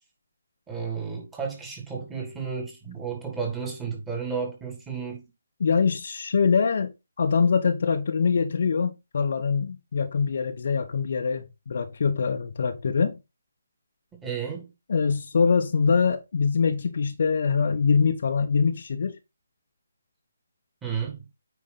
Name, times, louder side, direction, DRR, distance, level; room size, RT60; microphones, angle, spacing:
voice 1, 0.7-5.2 14.2-14.7 20.8-21.2, right 6 dB, 10° right, 2.8 m, -32 dB
voice 2, 5.6-13.2 14.9-19.2, left 5 dB, 50° left, 1.0 m, -24 dB
8.9 x 4.9 x 4.1 m
figure-of-eight pair, 145°, 0 cm